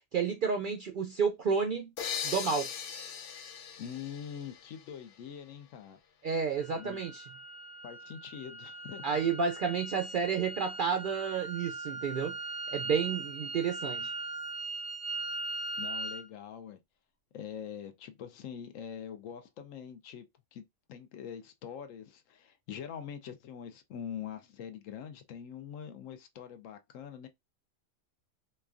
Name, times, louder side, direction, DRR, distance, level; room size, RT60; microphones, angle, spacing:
voice 1, 0.1-1.9 2.2-2.7 6.2-7.2 9.0-12.4 12.7-14.1, right 6 dB, 70° right, 0.4 m, -31 dB
sound 1, 2.0-5.5, left 7 dB, 60° left, 0.6 m, -40 dB
voice 2, 3.8-6.0 6.7-7.0 7.8-9.2 15.8-16.8 17.3-20.3 20.5-20.6 20.9-27.3, left 8 dB, 75° left, 1.0 m, -44 dB
sound 2, 6.6-16.3, right 3 dB, 30° right, 0.6 m, -40 dB
4.2 x 2.3 x 2.4 m
omnidirectional pair, 1.4 m